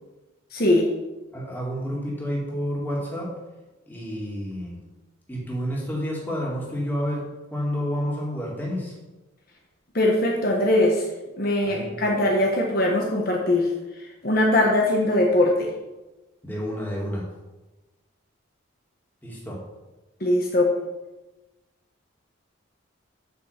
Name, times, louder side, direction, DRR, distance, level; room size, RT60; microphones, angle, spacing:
voice 1, 0.5-0.9 9.9-11.0 11.4-13.7 14.2-15.7 20.2-20.8, left 1 dB, 45° left, -1 dB, 1.3 m, -21 dB
voice 2, 1.3-3.3 3.9-4.8 5.3-8.9 11.6-12.0 16.4-17.2 19.2-19.6, equal, 10° left, -4 dB, 2.5 m, -30 dB
8.5 x 6.1 x 7.4 m, 1.1 s
head